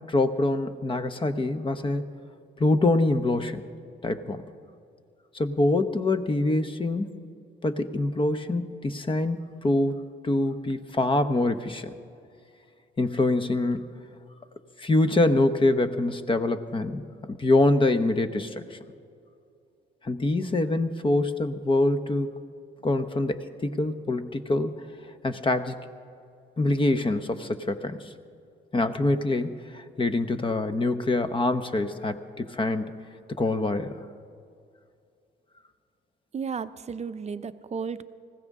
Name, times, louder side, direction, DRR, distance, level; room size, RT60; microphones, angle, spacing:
voice 1, 0.1-2.0 2.6-3.6 4.0-4.4 5.3-7.1 7.6-11.9 13.0-14.0 14.8-17.0 17.3-18.8 20.0-22.3 22.8-24.7 25.2-25.8 26.6-28.0 28.7-32.8 33.4-34.0, left 2 dB, 25° left, 10 dB, 0.9 m, -25 dB
voice 2, 36.3-38.0, right 6 dB, 35° right, 13 dB, 0.6 m, -33 dB
20.0 x 16.0 x 3.7 m, 2.5 s
cardioid pair, 90°, 20 cm